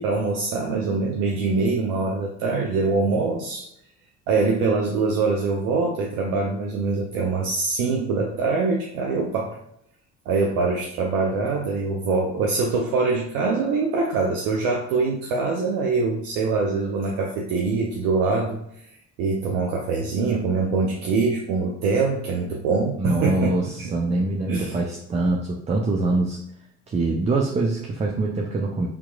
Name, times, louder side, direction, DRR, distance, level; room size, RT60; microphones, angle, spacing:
voice 1, 0.0-3.7 4.3-9.6 10.3-18.6 19.2-23.5 23.8-23.9 24.5-24.7, right 4 dB, 65° right, 0 dB, 0.6 m, -24 dB
voice 2, 23.0-26.4 26.9-28.9, right 2 dB, 20° right, 0 dB, 0.4 m, -24 dB
3.6 x 2.9 x 2.3 m, 0.74 s
hypercardioid pair, 60°, 36 cm